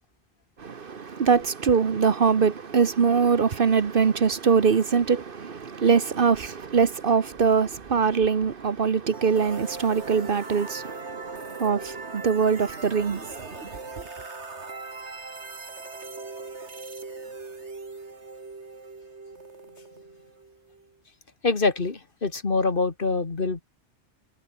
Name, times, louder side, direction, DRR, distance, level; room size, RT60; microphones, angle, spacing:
voice 1, 0.6-13.6, right 6 dB, 55° right, 1.1 m, -23 dB
sound 1, 9.1-20.9, right 3 dB, 80° right, 3.0 m, -40 dB
voice 2, 21.4-23.6, left 3 dB, 50° left, 2.1 m, -25 dB
omnidirectional pair, 1.1 m